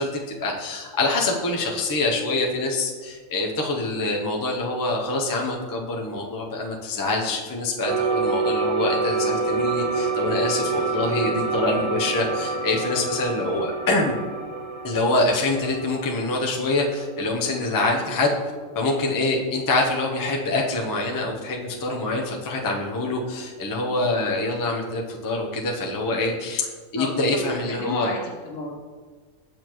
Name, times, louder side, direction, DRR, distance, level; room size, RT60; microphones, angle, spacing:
voice 1, 0.0-14.1 14.8-18.3 18.7-26.7 26.9-28.1, left 2 dB, 25° left, -1 dB, 0.5 m, -25 dB
sound 1, 7.9-17.7, right 3 dB, 60° right, 0.3 m, -27 dB
voice 2, 27.0-28.7, left 3 dB, 75° left, -1 dB, 1.5 m, -32 dB
6.9 x 6.1 x 3.0 m, 1.5 s
omnidirectional pair, 1.4 m